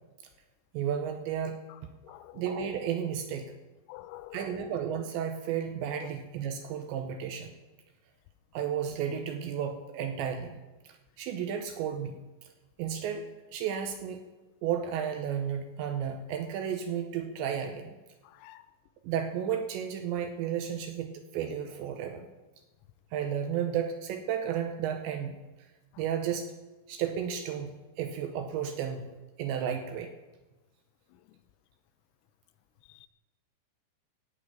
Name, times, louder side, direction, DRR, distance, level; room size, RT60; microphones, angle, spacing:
voice 1, 0.7-1.6 2.3-3.5 4.3-7.5 8.5-10.6 11.2-12.2 12.8-13.2 13.5-14.2 14.6-17.9 19.0-22.3 23.1-25.4 26.0-26.5 26.9-27.7 28.0-29.1 29.4-30.1, right 8 dB, 80° right, 6 dB, 2.7 m, -33 dB
voice 2, 2.0-2.4 3.9-4.5 18.4-18.6 33.0-33.1, left 15 dB, 85° left, 14 dB, 3.2 m, -47 dB
15.5 x 5.7 x 8.7 m, 1.1 s
omnidirectional pair, 5.9 m